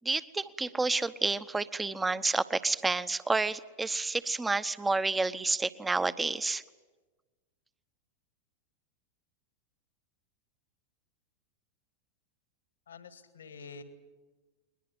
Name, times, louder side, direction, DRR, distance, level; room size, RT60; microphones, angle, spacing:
voice 1, 0.0-6.6, right 3 dB, 10° right, 15 dB, 0.9 m, -30 dB
voice 2, 12.9-13.8, left 5 dB, 65° left, 12 dB, 1.9 m, -47 dB
21.0 x 20.5 x 9.6 m, 1.2 s
figure-of-eight pair, 90°, 0 cm